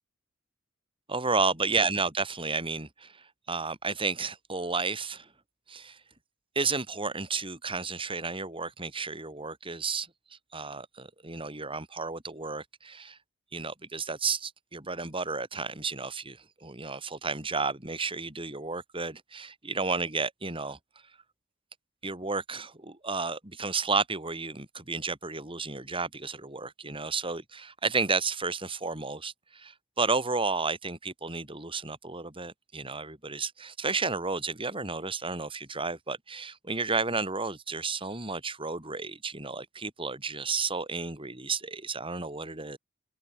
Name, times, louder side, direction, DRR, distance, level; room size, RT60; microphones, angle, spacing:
voice 1, 1.1-5.3 5.7-6.0 6.5-10.1 10.5-13.2 13.5-20.8 22.0-42.8, right 4 dB, 25° right, 5.0 m, -32 dB
head